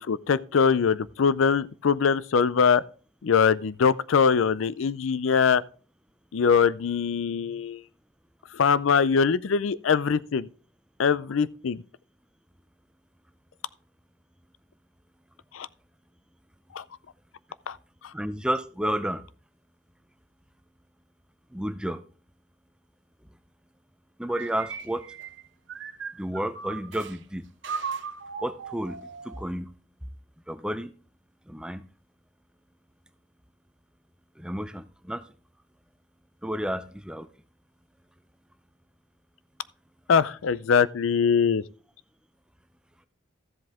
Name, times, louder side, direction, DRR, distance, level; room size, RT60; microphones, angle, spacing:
voice 1, 0.0-2.8 3.2-5.6 6.3-7.8 8.5-10.5 11.0-11.8 15.5-15.7 16.7-16.8 17.7-17.8 40.1-41.6, left 6 dB, 85° left, 0.5 m, -22 dB
voice 2, 18.1-19.2 21.5-22.0 24.2-25.1 26.2-27.5 28.4-29.0 29.2-29.7 30.5-30.9 31.5-31.8 34.4-35.2 36.4-37.3, right 1 dB, 5° right, 0.5 m, -31 dB
sound 1, 24.3-27.2 27.6-29.4, right 5 dB, 70° right, 0.9 m, -37 dB
13.5 x 7.7 x 3.6 m
head